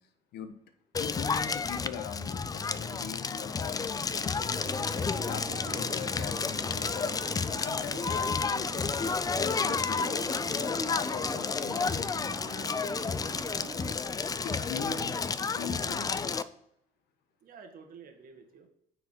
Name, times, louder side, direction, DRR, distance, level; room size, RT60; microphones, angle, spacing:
Crackle, 0.9-16.4, left 5 dB, 20° left, 0.4 m, -31 dB
voice 1, 1.0-4.6 5.0-8.8 9.4-12.9 13.8-13.9 14.4-15.2 15.5-16.3, left 7 dB, 80° left, 7 dB, 1.2 m, -41 dB
sound 1, 4.5-14.0, right 6 dB, 30° right, 0.7 m, -44 dB
voice 2, 14.5-15.1 15.8-16.0 17.4-18.7, right 6 dB, 55° right, 5 dB, 1.5 m, -48 dB
9.1 x 4.7 x 6.0 m, 0.75 s
cardioid pair, 110°, 17 cm